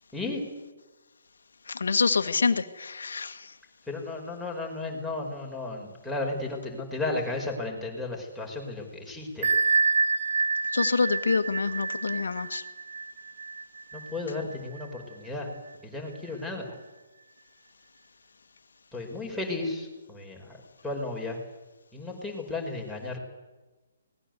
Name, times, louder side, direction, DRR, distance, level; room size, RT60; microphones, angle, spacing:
voice 1, 0.1-0.4 3.9-9.5 13.9-15.5 15.8-16.8 18.9-20.6 20.8-21.4 21.9-23.2, left 2 dB, ahead, -2 dB, 5.7 m, -34 dB
voice 2, 1.7-3.5 10.7-12.6, left 4 dB, 70° left, 11 dB, 1.5 m, -26 dB
Bell, 9.4-14.9, right 4 dB, 50° right, 1.8 m, -28 dB
25.0 x 20.0 x 8.2 m, 1.2 s
figure-of-eight pair, 130°, 0 cm